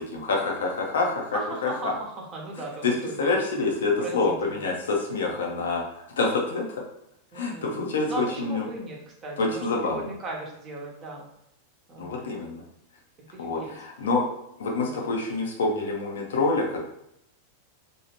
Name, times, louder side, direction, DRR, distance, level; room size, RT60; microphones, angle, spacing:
voice 1, 0.0-1.9 2.8-5.8 6.2-6.8 7.3-8.6 9.4-10.1 12.0-12.6 13.4-14.2 14.6-16.8, left 3 dB, 65° left, 0 dB, 0.7 m, -27 dB
voice 2, 1.3-3.3 4.0-4.6 7.3-7.8 8.0-11.3 11.9-12.3 13.2-13.7 14.8-15.0, right 2 dB, 25° right, -2 dB, 0.8 m, -37 dB
2.6 x 2.4 x 3.1 m, 0.79 s
figure-of-eight pair, 90°, 0 cm